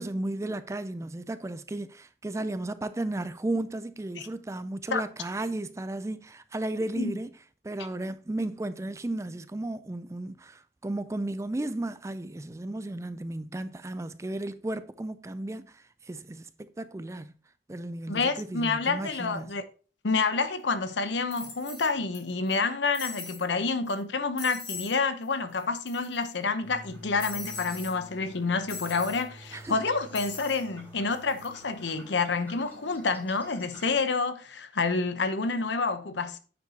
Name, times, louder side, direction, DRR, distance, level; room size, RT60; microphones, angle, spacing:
voice 1, 0.0-7.3 7.6-17.3 17.7-19.5 29.5-29.8, right 2 dB, 15° right, 0.3 m, -34 dB
voice 2, 18.1-19.6 20.0-36.4, left 4 dB, 80° left, 0.9 m, -28 dB
sound 1, 20.5-20.6 21.3-22.2 22.5-22.6 22.9-23.5 23.9-24.0 24.4-25.0 25.2-25.3 25.6-26.3 27.2-27.9 28.7-29.2 30.1-30.6 31.1-31.5, left 4 dB, 25° left, 2.4 m, -40 dB
sound 2, 26.6-33.9, right 1 dB, 10° left, 3.9 m, -49 dB
9.5 x 7.4 x 2.8 m
head